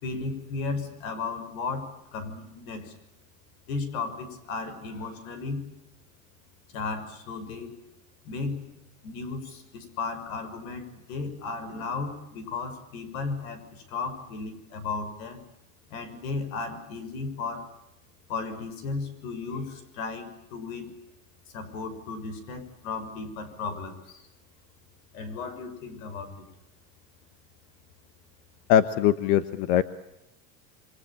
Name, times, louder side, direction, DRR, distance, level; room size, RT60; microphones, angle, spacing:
voice 1, 0.0-2.9 3.7-5.6 6.7-7.7 8.2-8.6 9.0-15.4 15.9-17.7 18.3-20.9 21.5-24.2 25.1-26.5, left 4 dB, 85° left, 12 dB, 6.4 m, -35 dB
voice 2, 28.7-29.8, left 10 dB, 50° left, 12 dB, 1.2 m, -21 dB
28.0 x 24.0 x 8.8 m, 0.86 s
supercardioid pair, 165°, 41 cm